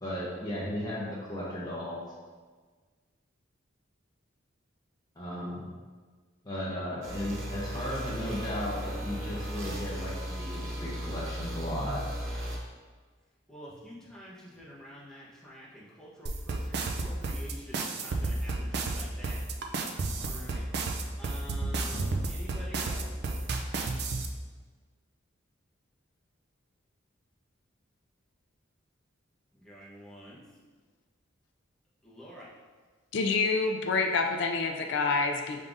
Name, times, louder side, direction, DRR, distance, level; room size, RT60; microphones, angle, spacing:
voice 1, 0.0-2.0 5.2-5.7 6.4-12.0, equal, 20° left, -7 dB, 0.8 m, -35 dB
sound 1, 7.0-12.6, equal, 90° right, 0.9 m, -36 dB
voice 2, 13.5-19.4 19.8-24.0 29.5-30.4 32.0-32.5, equal, 5° left, -9 dB, 1.1 m, -48 dB
sound 2, 16.3-24.3, right 3 dB, 55° right, 0.4 m, -31 dB
voice 3, 33.1-35.6, left 4 dB, 65° left, 3 dB, 0.4 m, -27 dB
5.3 x 3.6 x 2.6 m, 1.5 s
head